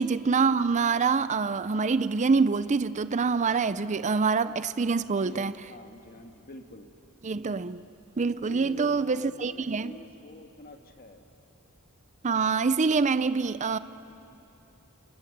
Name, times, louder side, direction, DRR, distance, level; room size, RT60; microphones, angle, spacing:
voice 1, 0.0-5.5 7.2-7.8 8.2-9.9 12.2-13.8, right 4 dB, 35° right, 0.5 m, -25 dB
voice 2, 5.2-6.9 8.3-11.3, left 1 dB, 40° left, 1.7 m, -46 dB
29.0 x 28.0 x 6.7 m
head